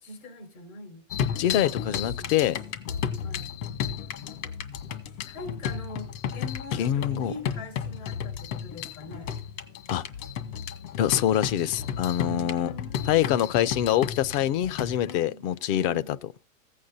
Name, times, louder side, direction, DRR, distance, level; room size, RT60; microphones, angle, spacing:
voice 1, 0.0-2.4 3.2-3.5 5.3-9.4 12.2-13.2 15.0-15.4 15.7-16.1, left 1 dB, 85° left, 5.5 m, -42 dB
sound 1, 1.1-15.1, left 8 dB, 60° left, 2.2 m, -33 dB
voice 2, 1.4-2.6 6.8-7.3 9.9-10.0 11.0-12.7 13.1-16.2, left 11 dB, 40° left, 0.8 m, -25 dB
15.5 x 8.5 x 4.2 m
hypercardioid pair, 130°, 41 cm